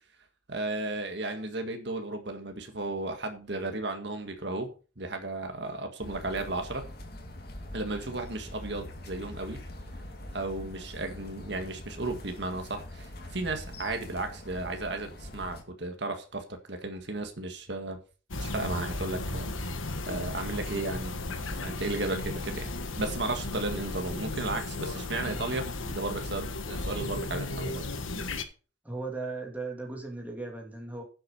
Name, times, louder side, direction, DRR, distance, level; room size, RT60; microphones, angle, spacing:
voice 1, 0.5-4.7 5.0-6.8 7.7-9.6 10.3-18.0 18.4-19.5 20.1-22.7 23.0-27.8, right 2 dB, 60° right, 1.9 m, -34 dB
sound 1, 6.0-15.6, left 1 dB, 50° left, 2.2 m, -43 dB
sound 2, 18.3-28.4, left 2 dB, 90° left, 1.4 m, -35 dB
voice 2, 28.8-31.0, right 3 dB, 10° right, 2.9 m, -37 dB
10.0 x 8.0 x 5.6 m
head